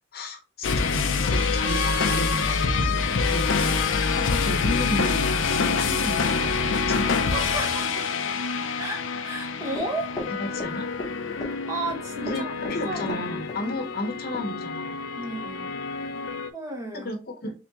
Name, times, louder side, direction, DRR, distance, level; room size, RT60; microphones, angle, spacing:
voice 1, 0.1-3.8 4.2-7.2 10.4-10.9 12.2-14.9 16.9-17.5, left 1 dB, 55° left, 0.9 m, -33 dB
sound 1, 0.6-16.5, left 5 dB, 90° left, 0.6 m, -26 dB
voice 2, 7.2-8.1 8.8-10.3 11.7-13.2 13.6-13.7 15.2-15.7 16.5-17.1, right 2 dB, 15° right, 0.9 m, -34 dB
Run, 9.8-11.1 11.4-12.0 12.3-13.6 13.9-14.0 14.3-14.5, left 1 dB, 20° left, 0.9 m, -36 dB
3.5 x 3.5 x 2.9 m
head